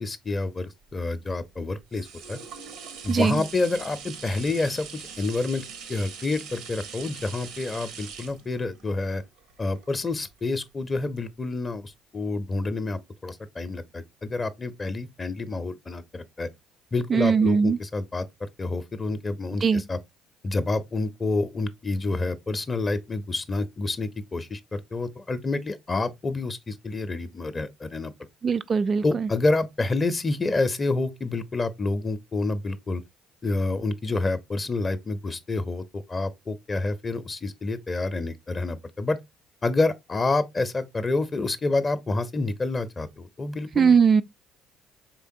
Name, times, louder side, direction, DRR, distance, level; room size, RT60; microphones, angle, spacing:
voice 1, 0.0-2.4 3.0-5.6 5.9-9.2 9.6-16.5 16.9-18.3 18.6-20.0 20.4-28.1 29.0-33.0 33.4-39.2 39.6-43.9, left 3 dB, 30° left, 0.5 m, -28 dB
sound 1, 0.9-10.6 11.2-11.3, right 6 dB, 70° right, 0.8 m, -42 dB
voice 2, 3.1-3.4 17.1-17.8 19.6-19.8 28.4-29.3 43.8-44.2, right 6 dB, 40° right, 0.3 m, -20 dB
4.4 x 3.4 x 2.6 m
hypercardioid pair, 55°, 0 cm